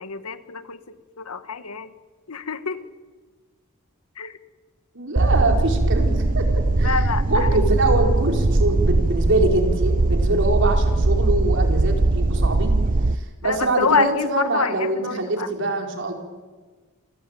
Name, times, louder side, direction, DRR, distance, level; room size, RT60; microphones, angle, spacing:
voice 1, 0.0-1.9 2.3-2.8 4.2-4.4 6.8-7.5 13.4-15.5, left 5 dB, 85° left, 12 dB, 1.4 m, -26 dB
voice 2, 4.9-7.0 7.3-12.8 13.1-16.1, right 2 dB, 60° right, 3 dB, 4.7 m, -24 dB
sound 1, 5.2-13.2, right 2 dB, 40° right, 0.8 m, -20 dB
29.5 x 19.5 x 9.1 m, 1.4 s
head